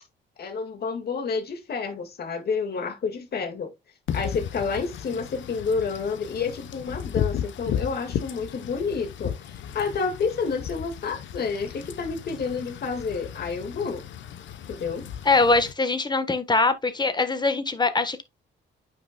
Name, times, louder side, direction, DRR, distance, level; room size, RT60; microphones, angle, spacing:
voice 1, 0.4-3.7 4.1-9.4 9.7-14.0 14.7-15.1, left 5 dB, 55° left, 2.0 m, -29 dB
Wind / Rain, 4.1-15.7, left 9 dB, 70° left, 0.9 m, -35 dB
voice 2, 15.2-18.2, left 3 dB, 20° left, 1.3 m, -22 dB
9.0 x 5.7 x 2.3 m
cardioid pair, 90°, 20 cm